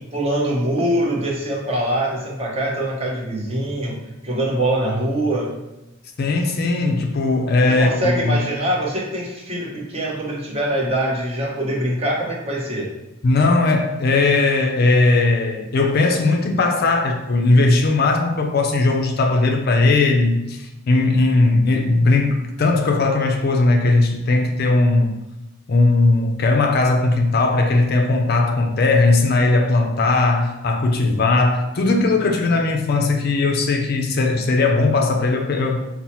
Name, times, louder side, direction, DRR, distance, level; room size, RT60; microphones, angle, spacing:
voice 1, 0.0-5.6 7.7-12.9, right 1 dB, 30° right, 0.7 m, -23 dB
voice 2, 6.2-8.4 13.2-25.1 25.7-35.9, left 3 dB, 50° left, 0.4 m, -18 dB
5.4 x 2.0 x 2.9 m
head